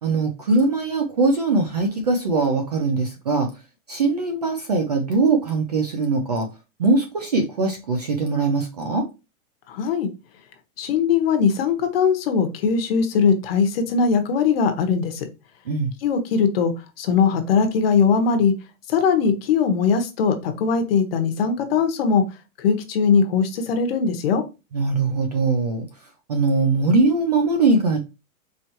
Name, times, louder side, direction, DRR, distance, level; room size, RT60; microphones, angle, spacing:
voice 1, 0.0-3.5 3.9-6.5 6.8-9.1 15.7-15.9 24.7-25.9 26.3-28.0, right 3 dB, 30° right, 5 dB, 0.4 m, -21 dB
voice 2, 9.7-10.1 10.8-15.2 16.0-16.7 17.0-18.5 18.9-22.2 22.6-24.4, left 6 dB, 45° left, 7 dB, 0.9 m, -20 dB
4.5 x 3.1 x 2.9 m, 0.27 s
supercardioid pair, 175°, 41 cm